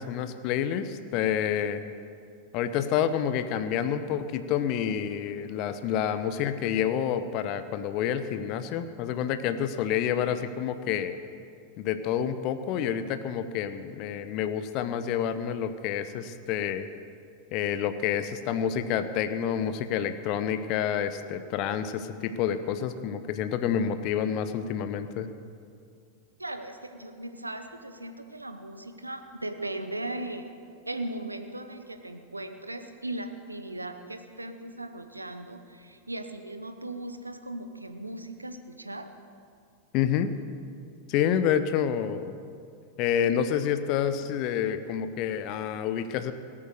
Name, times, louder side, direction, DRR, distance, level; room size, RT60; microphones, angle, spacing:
voice 1, 0.0-1.8 2.5-11.2 11.8-16.9 17.5-25.3 39.9-40.3 41.1-42.4 43.0-46.3, left 9 dB, 40° left, 11 dB, 0.8 m, -28 dB
voice 2, 26.4-30.5 30.8-39.1, right 1 dB, 85° right, 8 dB, 0.9 m, -38 dB
17.5 x 8.7 x 6.6 m, 2.3 s
figure-of-eight pair, 90°, 0 cm